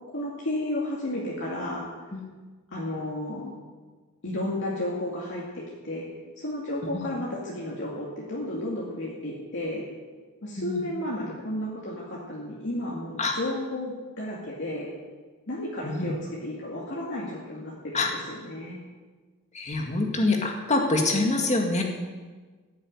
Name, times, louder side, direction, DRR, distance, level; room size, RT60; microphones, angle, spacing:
voice 1, 0.1-1.8 2.7-3.6 4.2-6.1 6.4-9.8 10.4-14.9 15.5-16.1 16.4-18.0 18.3-18.8, left 1 dB, 55° left, -5 dB, 2.4 m, -32 dB
voice 2, 6.8-7.1 8.5-8.6 10.6-10.8 13.2-13.3 15.8-16.1 17.9-18.1 19.5-21.8, left 2 dB, 30° left, 2 dB, 2.0 m, -26 dB
15.0 x 7.5 x 8.8 m, 1.4 s
head